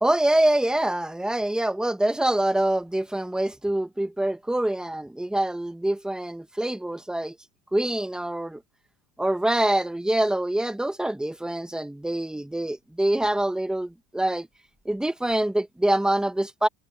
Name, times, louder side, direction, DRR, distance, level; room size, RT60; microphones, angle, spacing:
voice 1, 0.0-7.4 7.7-8.6 9.2-14.5 14.8-16.7, right 1 dB, ahead, 1.0 m, -25 dB
cardioid pair, 160°, 42 cm